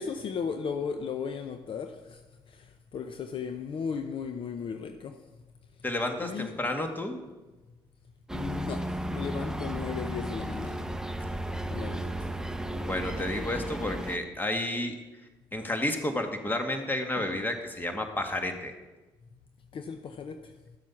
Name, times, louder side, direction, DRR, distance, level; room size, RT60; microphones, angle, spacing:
voice 1, 0.0-5.2 5.8-5.9 6.2-6.5 8.3-10.9 11.7-12.3 17.2-17.4 19.3-19.4 19.7-20.8, left 6 dB, 55° left, 0.7 m, -36 dB
voice 2, 5.8-7.2 12.7-14.9 15.5-18.7, left 1 dB, 20° left, 1.8 m, -31 dB
sound 1, 8.3-14.2, right 1 dB, 5° right, 0.8 m, -34 dB
12.0 x 7.5 x 5.8 m
supercardioid pair, 65°, 10 cm